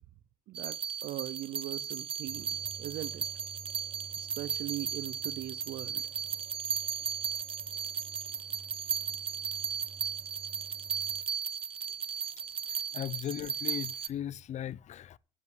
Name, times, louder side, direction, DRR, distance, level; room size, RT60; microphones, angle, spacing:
sound 1, 0.5-14.1, right 7 dB, 30° right, 0.7 m, -36 dB
voice 1, 0.5-2.5 2.8-3.2 4.2-6.0, right 14 dB, 70° right, 0.5 m, -40 dB
sound 2, 2.3-11.2, right 4 dB, 50° right, 1.1 m, -53 dB
voice 2, 12.7-15.2, left 11 dB, 45° left, 0.4 m, -38 dB
7.5 x 7.4 x 7.9 m
cardioid pair, 110°, 17 cm